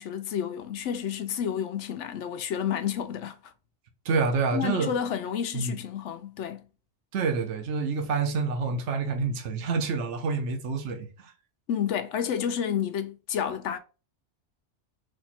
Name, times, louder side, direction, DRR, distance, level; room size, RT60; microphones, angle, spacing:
voice 1, 0.0-3.5 4.5-6.6 11.7-13.8, left 8 dB, 90° left, 1.0 m, -30 dB
voice 2, 4.0-4.9 5.5-5.8 7.1-11.3, right 4 dB, 80° right, 1.1 m, -28 dB
4.4 x 2.6 x 4.3 m
omnidirectional pair, 1.2 m